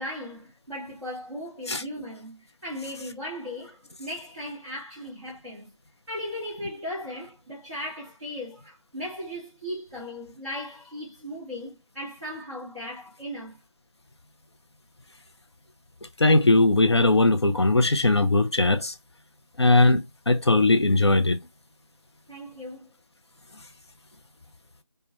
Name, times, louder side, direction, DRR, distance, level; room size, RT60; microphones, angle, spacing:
voice 1, 0.0-5.7 6.1-13.6 22.3-22.9, left 1 dB, ahead, 0.5 m, -37 dB
voice 2, 16.2-18.9 19.6-21.4, left 2 dB, 55° left, 0.4 m, -19 dB
2.2 x 2.1 x 2.8 m
figure-of-eight pair, 170°, 17 cm